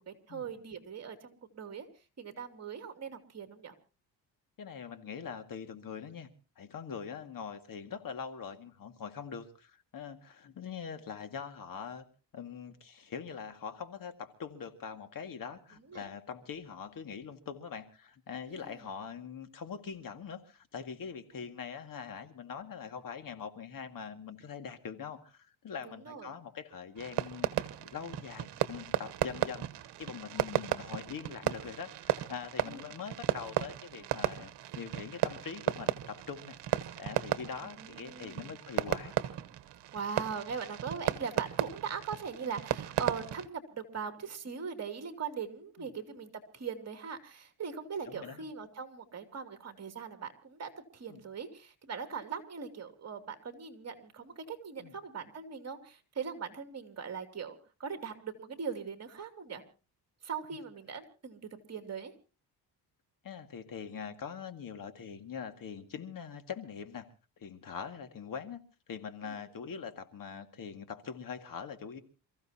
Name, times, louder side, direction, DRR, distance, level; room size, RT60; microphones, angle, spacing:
voice 1, 0.0-1.9 2.2-3.7 15.9-16.1 18.5-18.8 25.8-26.3 32.6-32.8 37.8-38.6 39.9-59.6 60.2-61.4 61.7-62.1 69.2-69.4, right 6 dB, 40° right, 7 dB, 2.8 m, -40 dB
voice 2, 4.6-6.3 6.6-12.1 12.3-39.1 45.8-45.9 48.1-48.4 51.1-51.2 54.8-55.0 63.2-67.1 67.4-68.6 68.9-72.0, left 6 dB, 50° left, 8 dB, 2.0 m, -43 dB
Fireworks, 27.0-43.5, right 13 dB, 75° right, 1.2 m, -35 dB
28.5 x 15.0 x 2.8 m, 0.35 s
cardioid pair, 115°, 41 cm